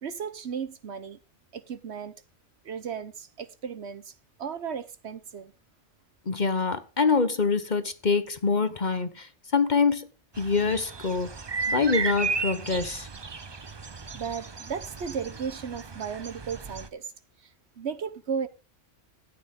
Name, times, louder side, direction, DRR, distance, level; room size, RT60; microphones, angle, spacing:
voice 1, 0.0-1.2 1.5-2.1 2.6-4.1 4.4-5.5 14.1-17.0 17.8-18.5, right 6 dB, 60° right, 1.2 m, -35 dB
voice 2, 6.3-10.1 10.4-11.3 11.7-13.1, left 4 dB, 40° left, 1.1 m, -25 dB
sound 1, 10.3-16.9, right 4 dB, 30° right, 0.6 m, -34 dB
13.0 x 9.1 x 3.6 m
omnidirectional pair, 1.3 m